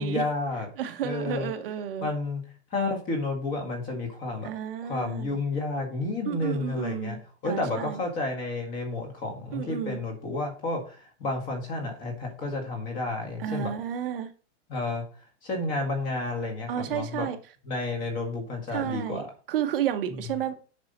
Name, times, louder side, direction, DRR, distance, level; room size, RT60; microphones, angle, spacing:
voice 1, 0.0-0.7 1.0-1.5 2.0-2.4 2.7-4.5 4.8-7.2 7.4-13.7 14.7-15.0 15.4-17.3 17.6-19.2, left 2 dB, 25° left, 3 dB, 1.9 m, -31 dB
voice 2, 0.8-2.1 4.4-5.4 6.3-7.2 7.4-8.0 9.5-10.0 13.4-14.3 16.7-17.4 18.7-20.5, right 9 dB, 50° right, 7 dB, 0.9 m, -31 dB
7.9 x 5.4 x 4.2 m, 0.38 s
supercardioid pair, 170°, 35 cm